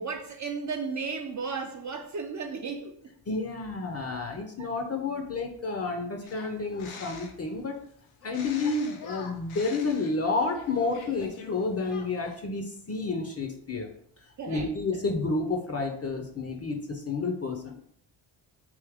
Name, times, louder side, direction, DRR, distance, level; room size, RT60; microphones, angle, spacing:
voice 1, 0.0-3.0 4.6-4.7 14.4-15.0, right 5 dB, 40° right, 0.5 m, -34 dB
voice 2, 3.3-7.8 8.2-13.9 14.5-17.8, left 3 dB, 30° left, 0.6 m, -30 dB
sound 1, 6.2-7.5 8.2-11.5 11.8-12.4, left 5 dB, 75° left, 0.7 m, -45 dB
3.5 x 2.7 x 3.4 m
cardioid pair, 70°, 49 cm